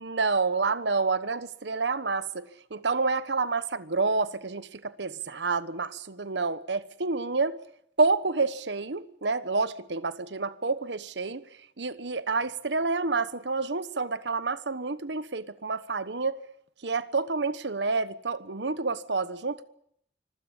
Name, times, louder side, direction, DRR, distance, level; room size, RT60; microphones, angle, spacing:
voice 1, 0.0-7.6 8.0-11.4 11.8-16.4 16.8-19.6, right 4 dB, 80° right, 1.2 m, -28 dB
25.0 x 15.5 x 9.8 m
head